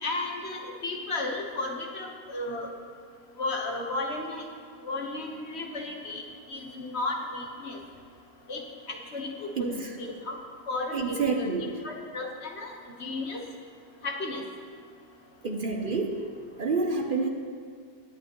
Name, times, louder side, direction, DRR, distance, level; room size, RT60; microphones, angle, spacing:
voice 1, 0.0-2.7 3.4-4.4 4.8-6.2 6.5-7.8 8.5-8.6 8.9-10.4 10.7-11.5 11.8-12.7 13.0-13.4 14.0-14.4, left 2 dB, 40° left, 1 dB, 1.4 m, -33 dB
voice 2, 10.9-11.7 15.4-16.3 16.6-17.3, right 4 dB, 55° right, 3 dB, 0.5 m, -28 dB
23.0 x 8.6 x 3.1 m, 2.1 s
omnidirectional pair, 1.9 m